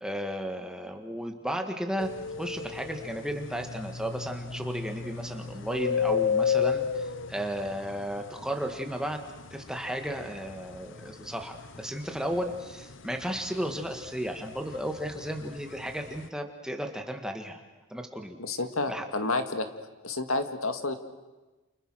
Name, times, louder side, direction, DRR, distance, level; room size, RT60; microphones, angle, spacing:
voice 1, 0.0-2.1 2.4-9.2 9.5-17.6 17.9-18.4 18.9-19.1, equal, 5° right, 4 dB, 1.8 m, -34 dB
sound 1, 2.0-16.3, left 6 dB, 60° left, 0.8 m, -33 dB
voice 2, 18.4-19.7 20.0-21.0, left 3 dB, 85° left, 8 dB, 2.0 m, -30 dB
29.5 x 29.0 x 6.4 m, 1.2 s
head